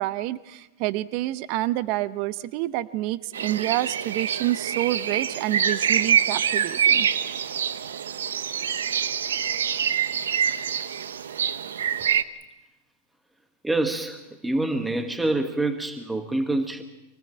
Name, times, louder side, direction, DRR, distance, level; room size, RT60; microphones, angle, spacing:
voice 1, 0.0-7.1, right 16 dB, 50° right, 16 dB, 0.7 m, -28 dB
sound 1, 3.3-12.2, right 8 dB, 90° right, 0.8 m, -25 dB
voice 2, 13.6-16.8, right 2 dB, 5° right, 8 dB, 1.2 m, -26 dB
24.0 x 18.5 x 7.4 m, 1.0 s
hypercardioid pair, 130°, 0 cm